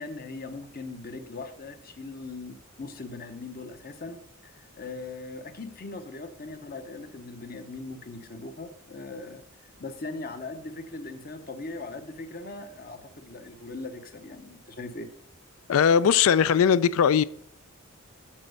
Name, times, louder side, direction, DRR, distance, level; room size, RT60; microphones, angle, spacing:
voice 1, 0.0-9.4 9.8-15.1, left 3 dB, 40° left, 0.8 m, -40 dB
voice 2, 15.7-17.2, left 7 dB, 70° left, 0.3 m, -20 dB
7.4 x 4.3 x 6.5 m
head